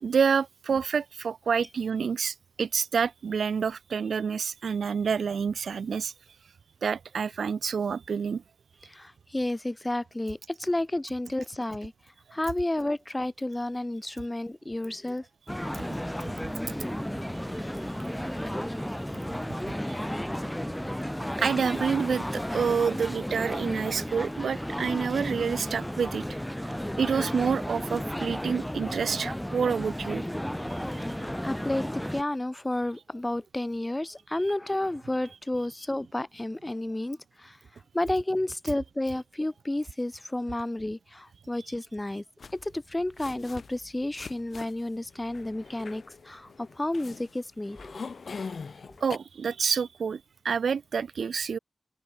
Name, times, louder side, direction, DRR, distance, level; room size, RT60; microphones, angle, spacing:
voice 1, 0.0-6.1 6.8-8.4 15.7-15.8 19.9-20.0 21.4-26.2 27.0-30.2 30.7-31.0 49.0-51.6, right 6 dB, 85° right, 0.3 m, -28 dB
voice 2, 8.9-11.9 12.3-15.2 31.4-37.6 37.9-42.2 42.5-48.0, left 1 dB, 20° left, 1.7 m, -31 dB
sound 1, 15.5-32.2, equal, 5° left, 1.2 m, -33 dB
sound 2, 42.4-49.2, left 5 dB, 70° left, 5.3 m, -42 dB
open air
cardioid pair, 45°, 0 cm